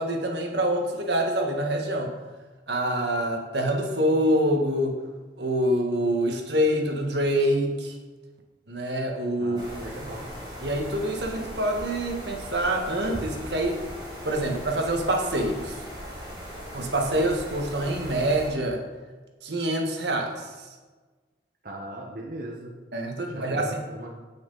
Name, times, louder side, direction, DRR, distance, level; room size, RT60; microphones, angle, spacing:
voice 1, 0.0-2.1 2.7-5.0 5.4-7.9 8.7-9.6 10.6-13.8 14.2-15.8 16.7-18.8 19.4-20.5 22.9-23.8, right 1 dB, 70° right, 2 dB, 1.6 m, -26 dB
voice 2, 9.4-10.3 21.6-22.7 23.2-24.1, right 1 dB, 50° right, -2 dB, 1.3 m, -38 dB
sound 1, 9.6-18.5, equal, 25° right, 3.1 m, -39 dB
16.5 x 6.1 x 4.1 m, 1.3 s
head